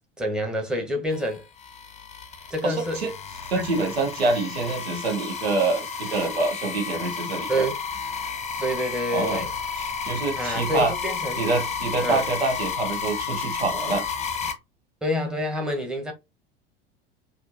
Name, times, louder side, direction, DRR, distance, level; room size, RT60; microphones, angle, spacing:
voice 1, 0.2-1.5 2.5-3.0 3.6-3.8 7.5-7.8 8.6-9.5 10.4-11.5 12.0-12.2 15.0-16.1, equal, 5° right, 1.3 m, -27 dB
sound 1, 1.1-14.5, left 6 dB, 20° left, 0.9 m, -32 dB
voice 2, 2.6-3.1 3.5-7.7 9.1-9.4 9.8-10.9 11.4-14.0, right 3 dB, 80° right, 1.0 m, -26 dB
4.3 x 2.6 x 2.7 m
figure-of-eight pair, 80°, 30 cm